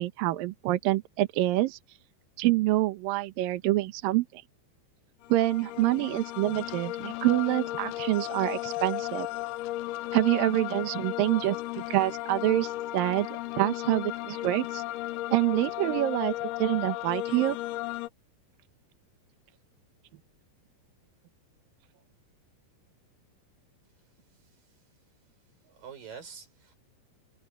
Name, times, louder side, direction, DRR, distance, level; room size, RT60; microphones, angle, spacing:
voice 1, 0.0-1.8 2.4-4.4 5.3-9.3 10.1-11.6 11.9-13.3 13.6-14.8 15.3-16.3 16.6-17.6, right 16 dB, 75° right, 2.1 m, -26 dB
sound 1, 5.2-18.1, left 16 dB, 85° left, 2.3 m, -35 dB
voice 2, 24.4-24.7 25.6-26.8, right 7 dB, 50° right, 7.1 m, -47 dB
omnidirectional pair, 5.4 m